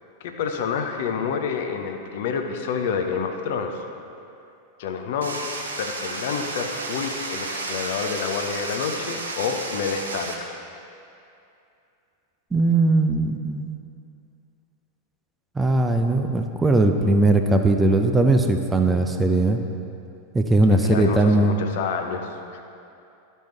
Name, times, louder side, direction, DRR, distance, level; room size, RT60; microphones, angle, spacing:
voice 1, 0.2-3.8 4.8-10.5 20.8-22.6, left 6 dB, 55° left, 4 dB, 0.6 m, -28 dB
sound 1, 5.2-10.3, right 3 dB, 70° right, 0.8 m, -32 dB
voice 2, 12.5-13.8 15.6-19.6 20.3-21.5, right 2 dB, 10° right, 5 dB, 0.5 m, -19 dB
11.5 x 5.4 x 3.2 m, 2.6 s
figure-of-eight pair, 90°, 0 cm